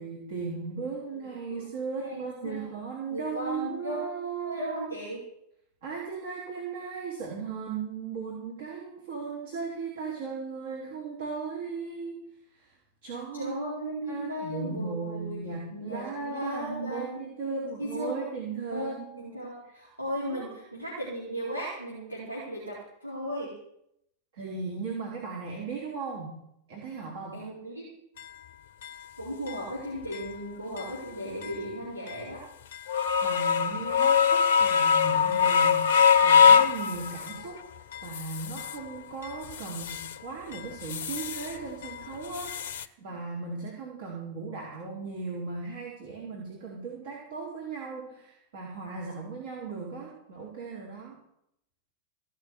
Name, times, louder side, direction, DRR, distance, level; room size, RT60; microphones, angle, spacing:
voice 1, 0.0-4.6 5.8-12.2 12.5-12.8 13.0-13.5 14.1-19.3 19.6-19.7 20.3-20.5 24.3-26.4 26.7-27.4 33.2-37.6 38.0-51.2, right 5 dB, 60° right, -4 dB, 4.0 m, -37 dB
voice 2, 1.9-2.6 3.1-4.0 4.4-5.2 13.3-15.4 15.7-18.2 18.6-23.5 27.3-27.9 29.2-32.4, equal, 90° right, -7 dB, 4.3 m, -36 dB
sound 1, 28.2-28.3 28.8-28.9 29.5-29.6 30.1-30.3 30.8-30.9 31.4-31.6 32.1-32.2 32.7-37.5 37.9-38.8 39.2-40.2 40.5-41.6 41.8-42.9, left 6 dB, 60° left, 0.8 m, -24 dB
16.5 x 6.5 x 9.5 m, 0.78 s
figure-of-eight pair, 90°, 0 cm